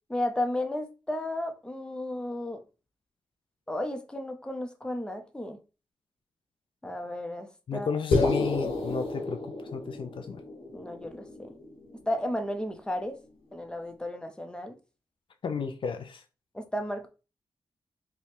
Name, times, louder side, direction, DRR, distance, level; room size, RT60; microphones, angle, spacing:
voice 1, 0.1-2.6 3.7-5.6 6.8-8.0 10.7-11.5 12.1-13.2 13.5-14.8 16.5-17.1, left 1 dB, 10° left, 0.8 m, -33 dB
voice 2, 7.7-9.4 9.7-10.4 15.4-16.2, left 6 dB, 60° left, 0.5 m, -32 dB
sound 1, 8.1-12.5, left 2 dB, 85° left, 1.1 m, -31 dB
3.3 x 2.3 x 4.4 m
cardioid pair, 75°, 10 cm